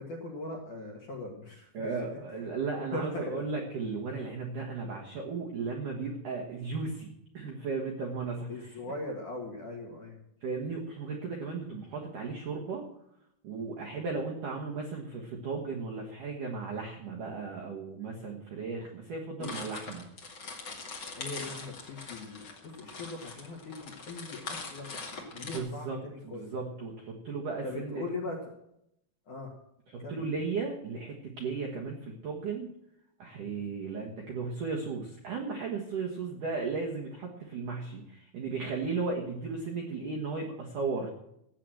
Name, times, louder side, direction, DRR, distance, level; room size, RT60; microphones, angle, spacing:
voice 1, 0.0-2.2 2.8-3.5 8.5-10.2 11.6-11.9 13.9-14.1 18.8-18.9 19.4-19.6 21.0-26.5 27.6-28.5 29.3-29.5 30.0-30.3 33.5-33.7, left 2 dB, 60° left, 2 dB, 2.1 m, -40 dB
voice 2, 1.7-8.7 10.4-12.9 13.4-20.1 25.3-28.0 29.9-32.7 33.2-41.1, right 4 dB, 70° right, -1 dB, 2.0 m, -35 dB
sound 1, 19.4-25.6, left 4 dB, 90° left, 0.9 m, -42 dB
13.5 x 8.7 x 7.6 m, 0.77 s
omnidirectional pair, 6.0 m